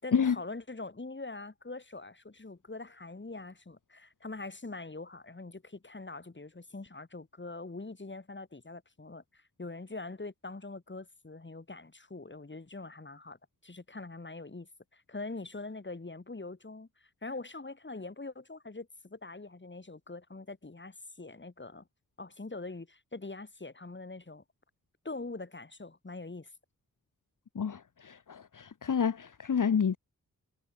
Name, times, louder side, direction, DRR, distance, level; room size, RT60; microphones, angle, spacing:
voice 1, 0.0-13.4 13.6-21.9 22.2-24.4 25.0-26.5, left 3 dB, 35° left, 4.4 m, -43 dB
voice 2, 27.5-30.0, left 7 dB, 65° left, 1.3 m, -29 dB
wide cardioid pair, 70°, 34 cm